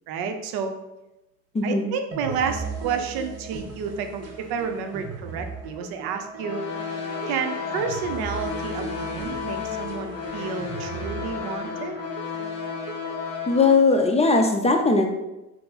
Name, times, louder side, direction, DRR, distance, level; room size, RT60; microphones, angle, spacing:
voice 1, 0.1-0.7 1.6-6.6 7.3-12.0, right 6 dB, 70° right, 6 dB, 0.6 m, -30 dB
voice 2, 1.5-1.9 13.5-15.1, left 3 dB, 20° left, 4 dB, 0.4 m, -19 dB
sound 1, 2.1-13.4, right 5 dB, 40° right, 0.8 m, -37 dB
sound 2, 6.4-13.7, left 6 dB, 40° left, 1.0 m, -33 dB
4.3 x 2.0 x 3.9 m, 0.98 s
supercardioid pair, 70°, 38 cm